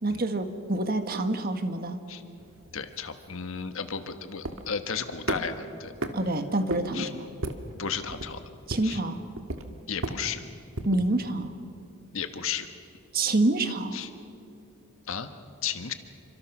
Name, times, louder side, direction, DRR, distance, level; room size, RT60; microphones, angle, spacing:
voice 1, 0.0-2.0 6.1-7.3 8.7-9.2 10.8-11.5 13.1-14.0, right 2 dB, 45° right, 8 dB, 1.5 m, -27 dB
sound 1, 2.4-11.1, right 1 dB, 70° right, 1.7 m, -37 dB
voice 2, 2.7-5.9 6.9-7.1 7.7-8.4 8.8-9.0 9.9-10.4 12.1-12.7 13.9-14.1 15.1-15.3 15.6-15.9, left 6 dB, 70° left, 8 dB, 1.4 m, -33 dB
28.0 x 25.0 x 6.1 m, 2.7 s
head